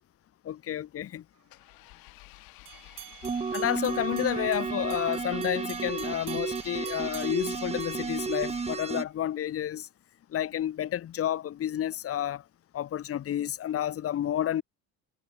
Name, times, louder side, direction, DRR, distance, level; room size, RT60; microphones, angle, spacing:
voice 1, 0.4-1.2 3.5-9.9 10.3-12.4 12.7-14.6, left 11 dB, 40° left, 1.5 m, -30 dB
Engine, 1.5-9.2, left 20 dB, 80° left, 5.8 m, -51 dB
sound 1, 2.7-8.9, right 15 dB, 60° right, 3.1 m, -48 dB
sound 2, 3.2-9.0, right 5 dB, 20° right, 1.5 m, -32 dB
cardioid pair, 140°, 35 cm